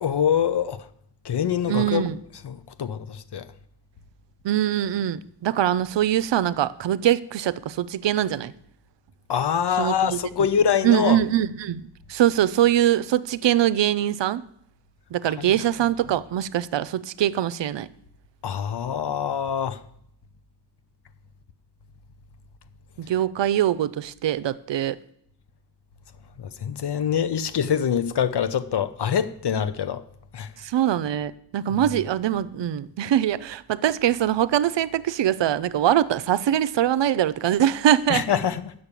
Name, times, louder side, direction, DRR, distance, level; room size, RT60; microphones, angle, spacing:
voice 1, 0.0-0.8 1.2-2.0 2.4-3.5 9.3-11.2 15.4-15.5 18.4-19.8 26.6-30.0 30.3-30.5 38.1-38.7, left 8 dB, 70° left, 0.8 m, -24 dB
voice 2, 1.7-2.2 4.4-8.5 9.8-10.2 10.8-14.4 15.1-17.9 23.0-25.0 30.6-38.2, right 11 dB, 85° right, 0.6 m, -23 dB
8.8 x 6.6 x 8.3 m
cardioid pair, 60°, 42 cm